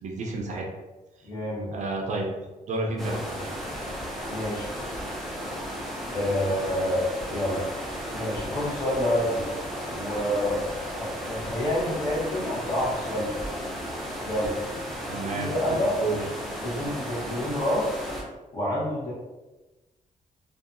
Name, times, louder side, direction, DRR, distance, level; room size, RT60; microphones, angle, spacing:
voice 1, 0.0-0.7 1.7-2.3 2.7-3.2 15.1-16.2, right 3 dB, 55° right, -1 dB, 0.4 m, -30 dB
voice 2, 1.2-1.7 3.3-3.4 4.3-4.7 6.1-7.6 8.1-9.5 9.8-10.7 10.9-13.4 14.2-14.5 15.3-16.0 16.6-18.0 18.5-19.1, left 1 dB, 25° left, -7 dB, 0.9 m, -28 dB
sound 1, 3.0-18.2, equal, ahead, 0.5 m, -35 dB
2.7 x 2.3 x 2.5 m, 1.1 s
wide cardioid pair, 180°, 14 cm